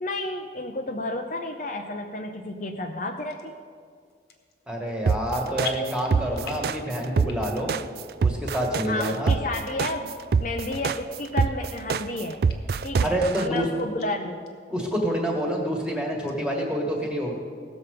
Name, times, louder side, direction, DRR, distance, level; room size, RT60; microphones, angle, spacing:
voice 1, 0.0-3.5 8.9-10.1 10.4-12.4 12.8-14.5, left 2 dB, 45° left, 4 dB, 0.6 m, -31 dB
sound 1, 3.3-3.5 4.1-4.6 4.9-5.3 5.6-6.8 7.1-7.7 8.0-8.1 8.8-8.9 9.5-9.6 10.3-10.4 10.8-10.9 11.4-12.1 12.5-12.6 13.0-13.1 13.4-14.1 14.5-14.6 14.9-15.0 15.4-15.9 16.3-16.4, left 6 dB, 65° left, 1.3 m, -41 dB
voice 2, 4.7-7.8 8.2-9.4 13.0-13.6 14.7-17.3, equal, 5° right, -1 dB, 1.7 m, -27 dB
sound 2, 5.1-13.4, right 5 dB, 55° right, 0.3 m, -24 dB
18.0 x 7.1 x 5.1 m, 2.1 s
head